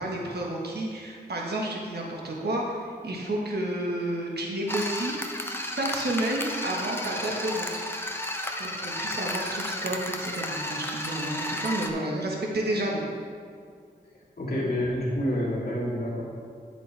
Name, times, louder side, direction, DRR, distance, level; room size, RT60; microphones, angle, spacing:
voice 1, 0.0-5.1 5.6-7.8 8.6-13.0, right 1 dB, 80° right, -2 dB, 1.4 m, -31 dB
sound 1, 4.7-11.9, left 1 dB, 15° left, 0.9 m, -33 dB
voice 2, 14.4-16.2, equal, 75° left, -8 dB, 2.4 m, -28 dB
8.5 x 8.2 x 3.4 m, 2.1 s
cardioid pair, 45°, 17 cm